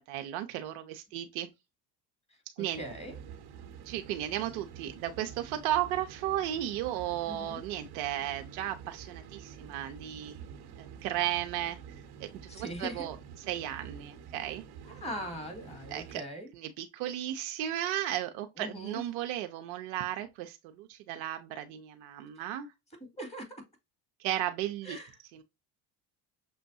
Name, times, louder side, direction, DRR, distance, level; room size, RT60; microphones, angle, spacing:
voice 1, 0.1-1.5 2.6-2.8 3.9-10.3 10.8-11.8 12.2-13.2 13.5-14.6 15.9-16.2 16.5-22.7 24.2-25.0 25.3-25.4, right 12 dB, 70° right, 0.7 m, -34 dB
voice 2, 2.6-3.2 7.3-7.6 12.5-13.1 14.8-16.5 18.6-19.0 22.4-22.5 23.0-23.5 24.8-25.1, equal, 15° left, 2.3 m, -41 dB
sound 1, 2.7-16.2, right 7 dB, 55° right, 1.0 m, -48 dB
6.1 x 2.2 x 2.6 m
hypercardioid pair, 70°, 47 cm